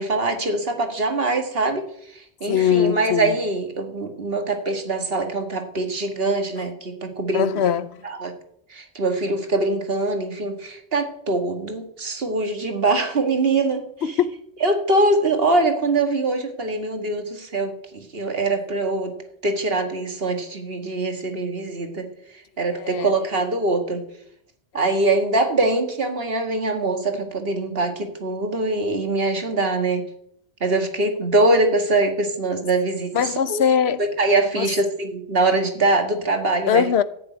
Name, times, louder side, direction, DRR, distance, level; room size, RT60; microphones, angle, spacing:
voice 1, 0.0-7.5 8.0-8.3 8.7-14.2 14.6-19.1 19.4-22.1 22.6-24.0 24.7-30.1 30.6-33.7 34.0-36.9, right 2 dB, 60° right, 2.0 m, -23 dB
voice 2, 2.5-3.4 7.3-7.9 14.0-14.3 22.7-23.1 33.1-34.0 34.6-34.7 36.7-37.0, left 8 dB, 75° left, 1.0 m, -21 dB
14.5 x 6.9 x 9.2 m
omnidirectional pair, 1.1 m